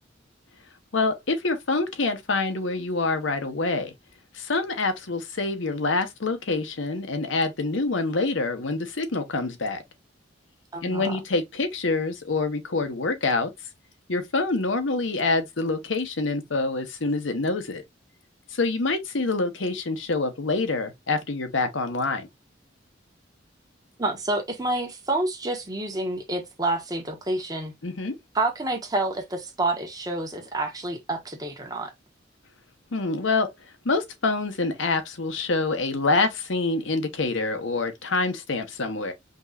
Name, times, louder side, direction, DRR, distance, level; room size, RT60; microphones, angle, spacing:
voice 1, 0.9-3.9 4.3-9.8 10.8-13.5 14.1-17.8 18.5-22.3 27.8-28.2 32.9-33.5 33.8-39.1, left 3 dB, 80° left, 1.0 m, -26 dB
voice 2, 10.7-11.1 24.0-27.7 28.3-31.9, right 2 dB, 20° right, 1.2 m, -28 dB
5.2 x 3.0 x 2.4 m
head